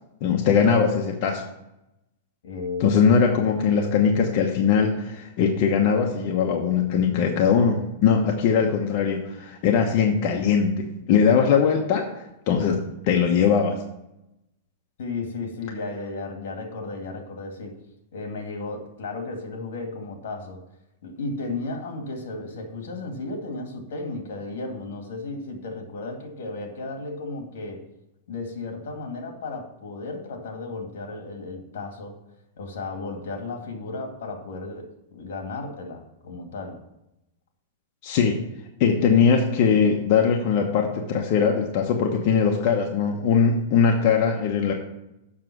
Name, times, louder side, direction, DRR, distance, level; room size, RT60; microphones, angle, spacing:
voice 1, 0.2-1.4 2.8-12.8 13.1-13.8 38.0-38.4 38.8-44.7, left 6 dB, 40° left, 1 dB, 1.0 m, -21 dB
voice 2, 2.4-3.7 15.0-17.8 18.1-20.6 21.0-27.9 28.3-32.2 32.6-36.8, left 3 dB, 75° left, 4 dB, 2.2 m, -34 dB
7.5 x 6.2 x 6.1 m, 0.89 s
supercardioid pair, 160°, 0 cm